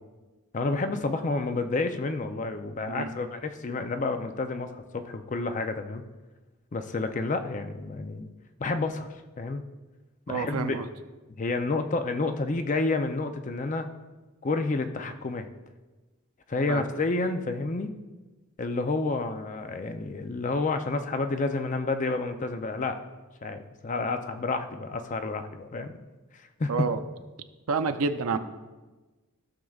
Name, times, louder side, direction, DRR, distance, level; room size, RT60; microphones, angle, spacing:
voice 1, 0.5-6.0 6.7-8.3 8.6-9.1 9.4-9.6 10.3-10.8 11.4-13.9 14.4-15.5 16.5-17.9 18.6-23.0 23.4-26.0 26.6-26.9, left 3 dB, 35° left, 7 dB, 0.5 m, -29 dB
voice 2, 10.3-10.9 16.7-16.8 26.7-27.0 27.7-28.4, right 4 dB, 85° right, 8 dB, 0.6 m, -28 dB
15.0 x 6.4 x 2.4 m, 1.2 s
head